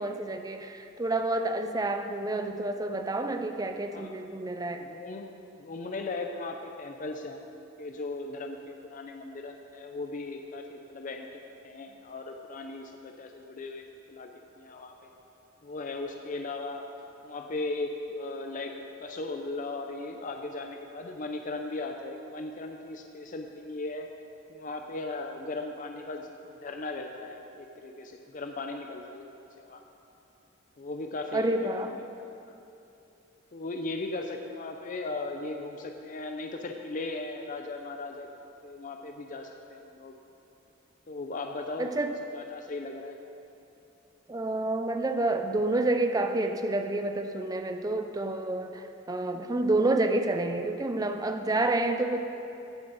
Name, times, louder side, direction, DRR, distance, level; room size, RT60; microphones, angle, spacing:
voice 1, 0.0-4.9 31.3-32.0 41.8-42.2 44.3-52.2, right 2 dB, 20° right, 6 dB, 0.5 m, -29 dB
voice 2, 4.8-5.3 5.6-7.5 7.8-11.3 11.6-14.3 14.6-15.1 15.6-16.9 17.2-24.1 24.5-29.3 29.6-29.8 30.8-31.5 31.8-32.6 33.5-40.1 41.1-43.1, left 2 dB, 40° left, 4 dB, 0.5 m, -37 dB
14.5 x 7.1 x 4.0 m, 2.8 s
head